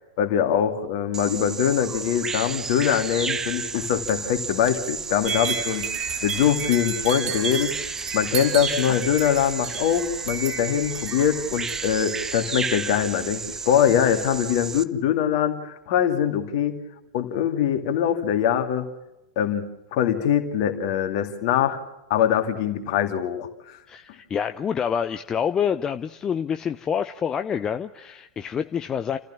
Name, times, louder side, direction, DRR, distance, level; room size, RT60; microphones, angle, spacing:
voice 1, 0.0-5.8 6.2-7.7 8.1-16.8 17.1-18.8 19.4-19.6 19.9-21.8 22.1-23.8, left 9 dB, 50° left, 6 dB, 2.5 m, -23 dB
Bird vocalization bird call bird song, 1.1-14.8, right 5 dB, 15° right, 0.7 m, -32 dB
sound 1, 5.2-12.3, right 7 dB, 40° right, 5.6 m, -33 dB
voice 2, 23.9-29.2, left 7 dB, 25° left, 9 dB, 0.7 m, -27 dB
29.5 x 15.0 x 7.3 m, 0.97 s
figure-of-eight pair, 90°, 3 cm